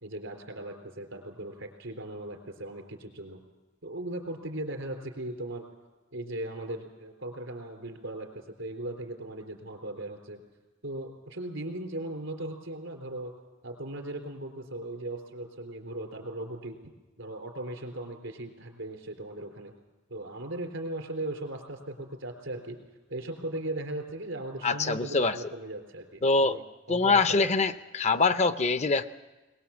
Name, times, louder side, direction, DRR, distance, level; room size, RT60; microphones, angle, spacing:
voice 1, 0.0-3.4 3.8-5.7 6.1-10.4 10.8-13.3 13.6-16.8 17.2-19.7 20.1-22.8 23.1-27.5, right 1 dB, 85° right, 3 dB, 3.8 m, -38 dB
voice 2, 24.6-25.4 26.2-26.6 26.9-29.0, left 3 dB, 35° left, 11 dB, 0.6 m, -24 dB
21.5 x 20.0 x 7.2 m, 1.2 s
head